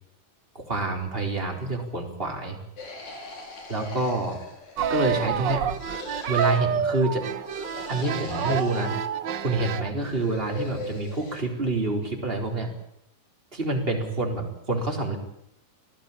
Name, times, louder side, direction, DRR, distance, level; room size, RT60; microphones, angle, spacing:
voice 1, 0.5-2.6 3.7-4.4 4.9-5.6 6.3-7.2 7.9-8.9 9.4-12.7 13.5-15.2, right 2 dB, 20° right, 2 dB, 4.3 m, -27 dB
sound 1, 2.8-5.0 5.7-6.6 7.4-9.1 9.9-11.4, left 2 dB, 70° left, 5.9 m, -40 dB
sound 2, 4.8-9.9, right 7 dB, 60° right, 1.2 m, -28 dB
24.5 x 17.5 x 8.7 m, 0.75 s
omnidirectional pair, 3.3 m